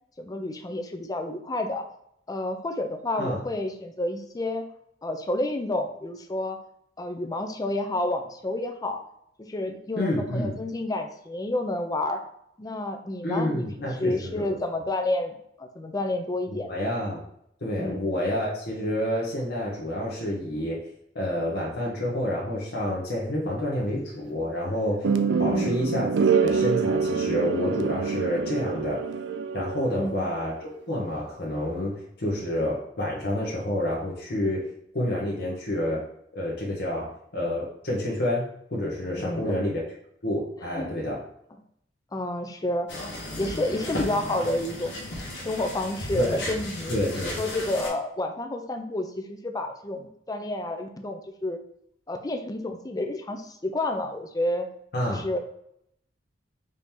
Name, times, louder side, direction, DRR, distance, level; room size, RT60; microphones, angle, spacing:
voice 1, 0.2-1.8 2.3-4.7 5.0-6.6 7.0-9.0 9.4-12.2 12.6-13.6 14.0-16.7 17.8-18.1 25.4-25.8 29.9-30.3 39.2-39.6 40.8-40.9 42.1-42.9 43.4-45.0 45.4-46.9 47.4-51.6 52.1-54.7 55.1-55.4, left 1 dB, 20° left, 6 dB, 0.5 m, -30 dB
voice 2, 10.0-10.6 13.2-14.4 16.5-17.2 17.6-20.8 21.1-25.1 25.4-26.1 26.3-29.0 29.5-34.7 34.9-36.0 36.3-39.8 40.2-41.2 46.1-46.4 46.9-47.4 54.9-55.2, left 1 dB, 65° left, -4 dB, 1.0 m, -28 dB
sound 1, 25.0-30.2, right 5 dB, 85° right, 0.4 m, -25 dB
sound 2, 42.9-47.9, left 1 dB, 80° left, 1.3 m, -35 dB
5.1 x 2.8 x 3.6 m, 0.73 s
head